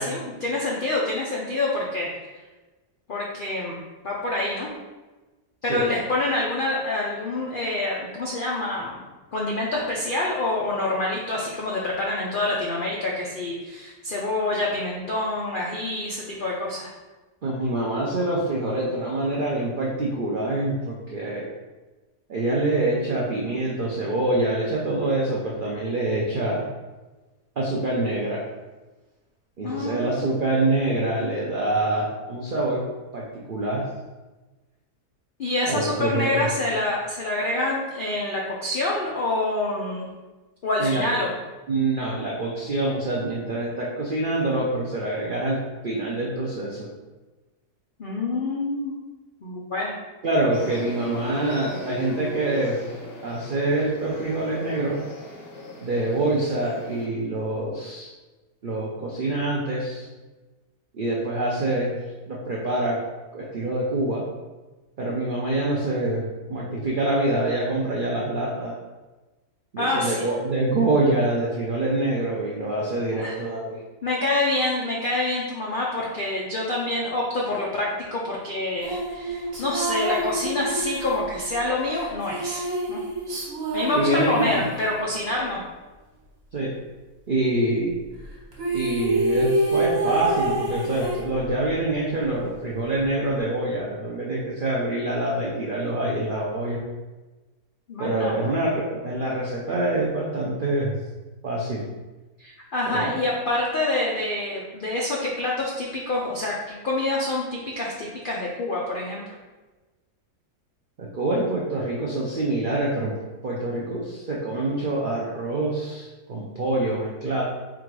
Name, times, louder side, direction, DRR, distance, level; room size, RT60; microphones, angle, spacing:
voice 1, 0.0-2.1 3.1-4.7 5.6-9.0 9.3-16.9 29.6-30.3 35.4-40.1 40.6-41.3 48.0-48.9 49.4-49.9 69.8-70.3 73.1-73.4 74.0-83.0 83.7-85.6 97.9-98.3 102.4-109.3, left 2 dB, 90° left, -4 dB, 0.4 m, -27 dB
voice 2, 17.4-21.5 22.3-26.6 27.6-28.5 29.6-32.8 33.1-33.8 35.7-36.5 40.8-41.0 41.7-45.6 45.8-46.9 50.2-52.8 53.2-55.0 55.8-58.1 58.6-60.1 60.9-62.0 62.3-63.0 63.3-64.2 65.0-68.8 69.7-73.8 83.9-84.7 86.5-86.7 87.3-88.0 88.7-96.8 98.0-100.9 101.4-101.8 102.9-103.1 111.0-113.1 113.4-117.4, right 2 dB, 80° right, -4 dB, 0.4 m, -25 dB
sound 1, 50.5-57.1, left 4 dB, 55° left, 0.7 m, -38 dB
sound 2, 78.8-85.0 88.2-88.3 88.5-91.7, right 2 dB, 45° right, 1.4 m, -27 dB
3.7 x 2.5 x 4.6 m, 1.2 s
omnidirectional pair, 1.7 m